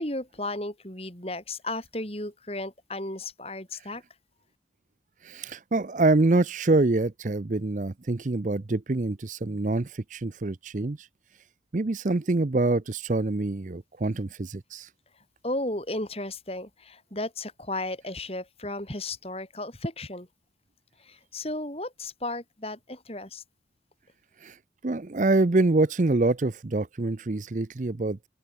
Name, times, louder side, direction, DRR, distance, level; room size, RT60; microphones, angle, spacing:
voice 1, 0.0-4.0 15.4-20.3 21.0-23.4, left 2 dB, 35° left, 6.0 m, -34 dB
voice 2, 5.2-11.1 11.7-14.9 24.4-24.6 24.8-28.3, right 2 dB, 45° right, 0.6 m, -25 dB
open air
head